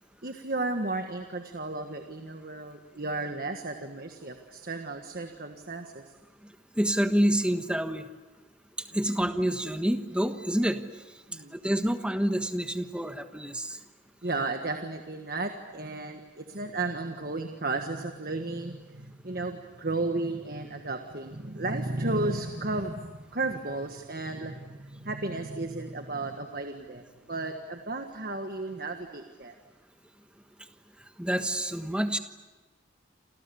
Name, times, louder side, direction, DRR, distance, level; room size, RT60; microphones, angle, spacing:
voice 1, 0.2-6.1 9.1-9.2 11.3-11.6 14.2-27.0 27.3-29.5, right 2 dB, 45° right, 5 dB, 1.5 m, -34 dB
voice 2, 6.8-8.0 8.9-10.9 11.5-13.8 31.2-32.2, equal, 5° right, 7 dB, 1.3 m, -27 dB
29.5 x 27.5 x 7.0 m, 1.2 s
head